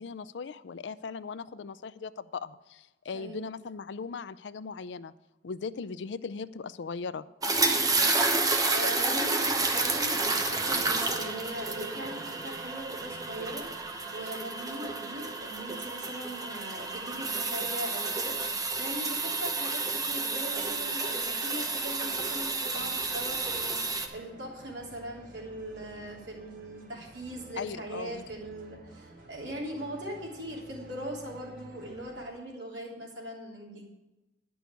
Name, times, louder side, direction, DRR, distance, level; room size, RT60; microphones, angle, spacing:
voice 1, 0.0-5.1 5.4-7.2 27.6-28.2, left 5 dB, 85° left, 15 dB, 0.4 m, -38 dB
voice 2, 3.1-3.5 7.8-33.8, right 1 dB, 85° right, -2 dB, 3.3 m, -40 dB
sound 1, 7.4-24.1, right 3 dB, 20° right, 1.0 m, -30 dB
sound 2, 22.7-32.3, right 1 dB, 55° right, 1.8 m, -52 dB
10.5 x 6.2 x 8.3 m, 1.1 s
head